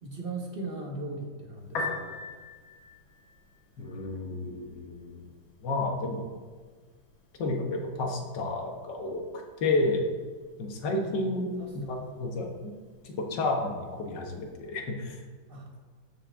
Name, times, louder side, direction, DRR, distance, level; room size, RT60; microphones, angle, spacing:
voice 1, 0.0-2.1 10.9-12.1 15.5-15.7, right 2 dB, 30° right, 0 dB, 1.4 m, -39 dB
Piano, 1.6-14.6, left 3 dB, 85° left, 2.3 m, -45 dB
voice 2, 3.8-5.3 5.6-6.2 7.4-9.2 9.6-10.1 10.6-12.7 13.0-15.2, left 2 dB, 65° left, 1 dB, 1.8 m, -31 dB
13.0 x 6.1 x 3.6 m, 1.5 s
omnidirectional pair, 2.1 m